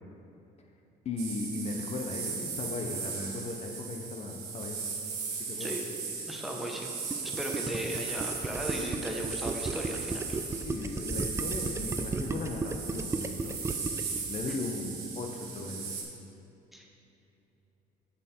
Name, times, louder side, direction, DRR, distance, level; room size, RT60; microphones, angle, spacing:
voice 1, 1.0-4.8 5.3-5.7 7.6-7.7 10.5-16.0, left 3 dB, 40° left, 2 dB, 0.7 m, -37 dB
sound 1, 1.2-16.0, right 5 dB, 75° right, 1.4 m, -37 dB
voice 2, 6.3-6.9 7.2-10.4 14.5-14.6 16.7-16.9, equal, ahead, 0 dB, 0.9 m, -36 dB
Gurgling, 7.1-14.2, right 3 dB, 15° right, 0.3 m, -34 dB
7.2 x 6.5 x 4.3 m, 2.8 s
cardioid pair, 110°, 17 cm